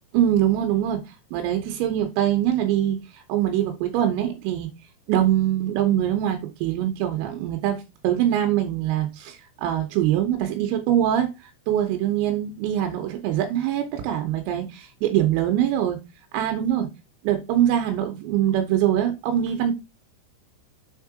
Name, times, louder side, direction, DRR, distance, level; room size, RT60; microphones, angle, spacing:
voice 1, 0.1-1.0 1.3-4.7 5.1-16.0 16.3-16.9 17.3-19.7, right 11 dB, 85° right, 3.6 m, -23 dB
7.6 x 3.7 x 4.8 m
omnidirectional pair, 5.9 m